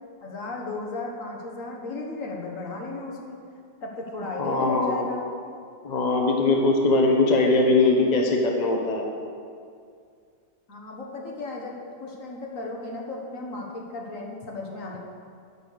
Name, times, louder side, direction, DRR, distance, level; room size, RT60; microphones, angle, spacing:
voice 1, 0.2-3.4 3.8-5.2 10.7-15.0, left 3 dB, 55° left, -1 dB, 1.8 m, -35 dB
voice 2, 4.4-5.1 5.8-9.0, left 2 dB, 30° left, 1 dB, 1.0 m, -21 dB
9.5 x 9.0 x 6.5 m, 2.3 s
omnidirectional pair, 1.8 m